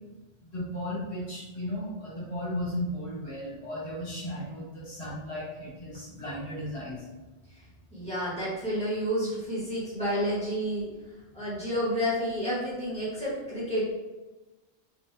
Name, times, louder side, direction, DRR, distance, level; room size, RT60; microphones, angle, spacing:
voice 1, 0.5-7.0, left 1 dB, 65° left, -8 dB, 1.6 m, -35 dB
voice 2, 7.9-10.8 11.3-13.8, equal, 5° left, -11 dB, 1.3 m, -30 dB
3.7 x 2.6 x 2.2 m, 1.1 s
omnidirectional pair, 1.2 m